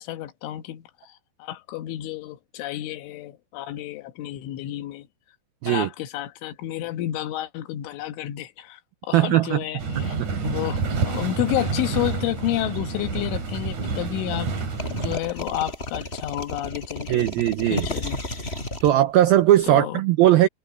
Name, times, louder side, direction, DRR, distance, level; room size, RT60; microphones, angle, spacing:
voice 1, 0.0-5.1 5.6-10.2 10.4-14.5 14.9-17.3 17.7-18.2 19.7-20.0, left 14 dB, 85° left, 3.7 m, -30 dB
voice 2, 9.1-9.6 10.0-10.3 15.0-15.1 17.1-17.9 18.8-20.5, right 13 dB, 85° right, 2.1 m, -19 dB
sound 1, 9.8-15.2, right 4 dB, 40° right, 4.7 m, -28 dB
sound 2, 14.8-19.6, left 1 dB, 10° left, 6.0 m, -32 dB
omnidirectional pair, 5.4 m